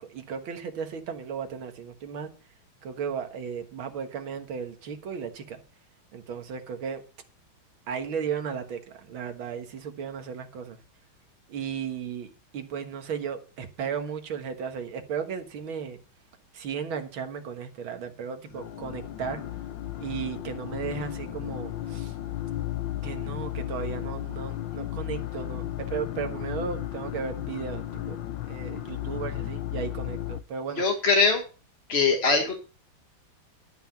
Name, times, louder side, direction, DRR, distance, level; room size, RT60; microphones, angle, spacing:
voice 1, 0.0-2.3 2.8-5.6 6.1-7.0 7.9-10.8 11.5-16.0 16.5-19.4 20.0-22.2 23.0-28.2 28.4-30.8, right 7 dB, 90° right, 7 dB, 2.3 m, -35 dB
sound 1, 18.5-30.4, left 13 dB, 70° left, 1.6 m, -34 dB
voice 2, 30.8-31.4 31.9-32.6, left 4 dB, 35° left, 2 dB, 1.6 m, -22 dB
12.5 x 5.8 x 7.2 m, 0.35 s
omnidirectional pair, 2.2 m